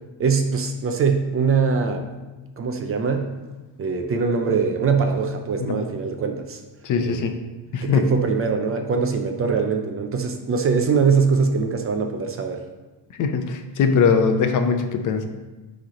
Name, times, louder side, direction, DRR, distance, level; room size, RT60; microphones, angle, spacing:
voice 1, 0.2-2.1 2.6-3.3 3.8-6.6 7.0-7.4 7.8-12.6, right 5 dB, 35° right, 5 dB, 0.5 m, -22 dB
voice 2, 6.8-7.3 7.7-8.1 13.1-15.2, left 5 dB, 50° left, 7 dB, 0.6 m, -21 dB
9.5 x 3.3 x 3.8 m, 1.2 s
cardioid pair, 150°, 41 cm